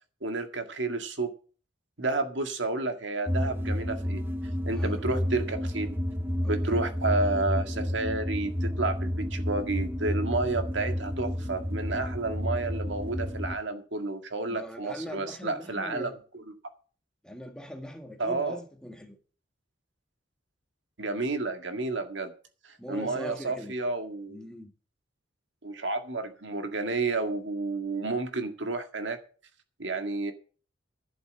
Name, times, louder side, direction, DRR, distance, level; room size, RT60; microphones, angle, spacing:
voice 1, 0.2-1.3 2.0-4.2 4.7-6.0 6.5-16.1 18.2-18.6 21.0-22.3 22.9-24.4 25.6-29.2 29.8-30.3, right 3 dB, 70° right, 1.9 m, -31 dB
sound 1, 3.3-13.6, equal, 10° right, 1.4 m, -31 dB
voice 2, 6.4-6.8 14.5-16.2 17.2-19.2 22.8-23.7 24.3-24.7, equal, 5° left, 1.7 m, -41 dB
11.5 x 7.8 x 7.7 m
head